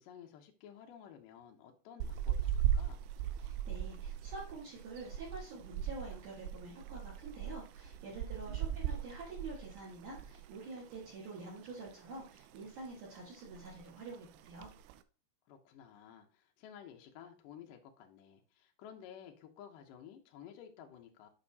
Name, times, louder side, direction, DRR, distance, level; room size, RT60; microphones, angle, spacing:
voice 1, 0.0-3.0 8.1-8.8 15.5-21.3, left 8 dB, 85° left, 3 dB, 1.9 m, -54 dB
sound 1, 2.0-10.5 10.8-11.0 11.4-12.2 12.6-12.9 13.2-13.3 13.4-13.9 14.4-14.9, right 10 dB, 85° right, 2.6 m, -38 dB
voice 2, 3.4-14.7, right 3 dB, 55° right, -5 dB, 2.6 m, -47 dB
9.0 x 5.3 x 2.8 m, 0.35 s
omnidirectional pair, 5.1 m